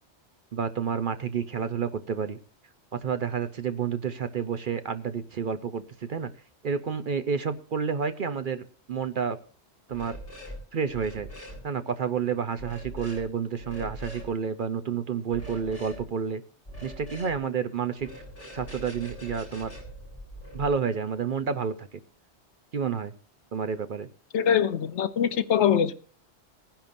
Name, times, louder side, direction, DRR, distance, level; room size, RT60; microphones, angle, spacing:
voice 1, 0.5-2.4 2.9-6.3 6.6-9.4 9.9-10.2 10.7-11.3 11.6-16.4 16.8-18.1 18.5-19.7 20.5-22.0 22.7-23.1 23.5-24.1, right 6 dB, 55° right, 11 dB, 0.8 m, -30 dB
sound 1, 9.9-10.6 10.9-11.6 12.6-13.2 13.6-14.3 15.3-16.0 16.7-17.4 18.0-20.7, equal, 30° left, 6.5 m, -42 dB
voice 2, 24.3-25.9, left 8 dB, 80° left, 12 dB, 1.1 m, -23 dB
20.5 x 10.5 x 2.6 m, 0.39 s
omnidirectional pair, 1.2 m